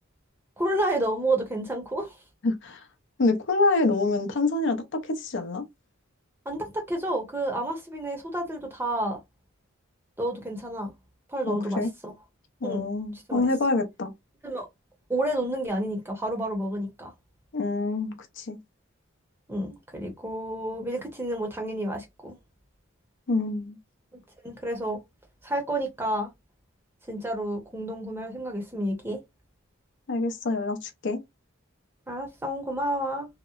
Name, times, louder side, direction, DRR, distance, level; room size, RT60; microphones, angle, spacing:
voice 1, 0.6-2.2 6.5-9.2 10.2-10.9 11.3-12.1 12.6-12.8 13.3-13.5 14.4-14.7 15.1-17.1 19.5-22.4 24.4-25.0 25.4-26.3 27.1-29.2 32.1-33.3, right 1 dB, 10° right, 0.6 m, -30 dB
voice 2, 2.4-2.8 3.2-5.6 11.5-11.9 12.6-14.1 17.5-18.6 23.3-23.8 30.1-31.2, left 3 dB, 60° left, 0.5 m, -26 dB
2.8 x 2.0 x 2.3 m
head